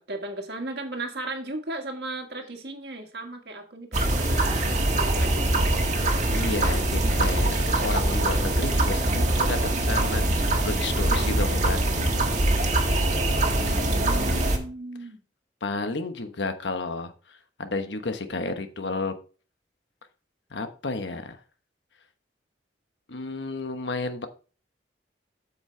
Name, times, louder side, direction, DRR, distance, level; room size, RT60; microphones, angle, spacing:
voice 1, 0.0-5.7 11.1-11.4 14.0-15.2, right 2 dB, 60° right, 4 dB, 1.8 m, -36 dB
sound 1, 3.9-14.6, right 1 dB, 40° right, 1.7 m, -23 dB
voice 2, 6.3-12.3 13.5-14.4 15.6-19.1 20.5-21.4 23.1-24.3, left 3 dB, 80° left, 8 dB, 1.1 m, -32 dB
8.7 x 7.2 x 3.3 m, 0.37 s
head